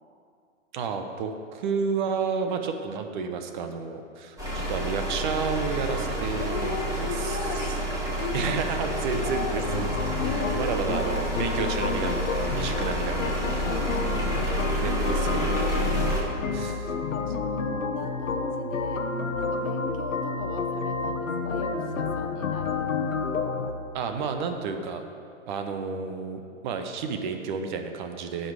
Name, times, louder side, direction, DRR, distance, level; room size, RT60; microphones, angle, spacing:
voice 1, 0.7-7.7 8.3-9.9 10.6-13.4 14.4-15.8 16.5-16.9 17.5-17.6 23.9-25.0 25.5-28.5, right 5 dB, 40° right, 6 dB, 1.0 m, -31 dB
sound 1, 4.4-16.2, right 1 dB, 10° right, 2.2 m, -29 dB
voice 2, 6.4-7.8 8.2-9.7 10.2-10.9 13.0-13.2 13.6-15.9 16.8-19.1 19.4-22.9, left 6 dB, 25° left, 6 dB, 0.7 m, -37 dB
sound 2, 9.6-23.7, left 4 dB, 85° left, 1.0 m, -30 dB
15.5 x 5.6 x 4.9 m, 2.4 s
hypercardioid pair, 135°, 38 cm